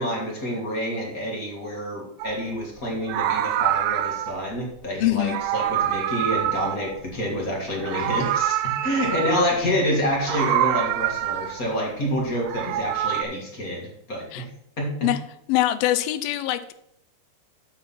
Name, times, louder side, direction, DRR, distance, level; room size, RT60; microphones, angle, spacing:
voice 1, 0.0-14.5 14.8-14.9, equal, 40° left, -2 dB, 1.2 m, -27 dB
Meow, 2.2-2.4 3.0-4.5 5.2-7.4 7.7-9.6 10.2-11.7 12.3-13.2, right 12 dB, 80° right, 2.1 m, -26 dB
voice 2, 5.0-5.4 14.3-14.5 15.0-15.2 15.5-16.7, left 14 dB, 80° left, 12 dB, 2.2 m, -23 dB
11.5 x 4.3 x 5.6 m, 0.76 s
omnidirectional pair, 4.5 m